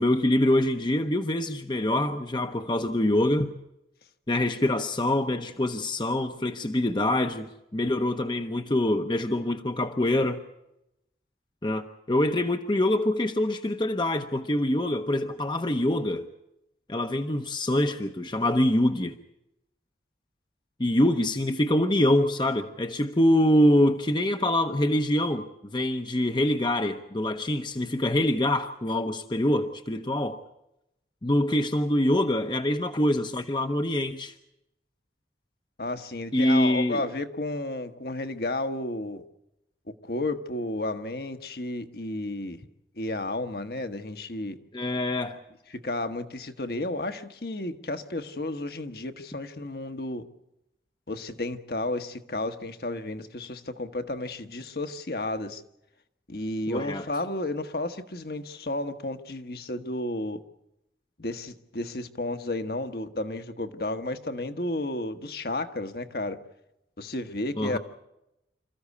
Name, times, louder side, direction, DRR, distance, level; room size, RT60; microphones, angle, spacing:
voice 1, 0.0-3.5 4.3-10.4 11.6-16.3 16.9-19.1 20.8-30.4 31.2-34.3 36.3-37.0 44.7-45.4 56.7-57.1 67.6-67.8, left 1 dB, 25° left, 0.8 m, -25 dB
voice 2, 35.8-39.2 40.0-42.6 43.0-44.6 45.8-50.2 51.1-55.6 56.3-60.4 61.2-66.4 67.0-67.8, left 2 dB, 55° left, 1.2 m, -32 dB
26.5 x 14.5 x 8.4 m
head